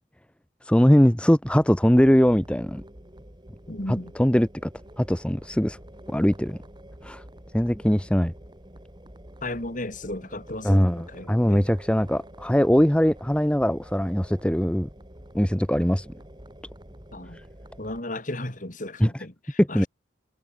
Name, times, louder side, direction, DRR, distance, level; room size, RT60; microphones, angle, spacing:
voice 1, 0.7-2.8 3.9-4.7 5.0-5.8 6.1-6.6 7.0-7.2 7.5-8.3 10.6-14.9 15.3-16.1 19.0-19.1 19.6-19.9, equal, 5° left, 1.0 m, -21 dB
sound 1, 1.4-18.0, equal, 25° right, 3.5 m, -47 dB
voice 2, 3.7-4.1 9.4-11.6 17.1-17.4 17.8-19.9, left 1 dB, 45° left, 3.3 m, -35 dB
head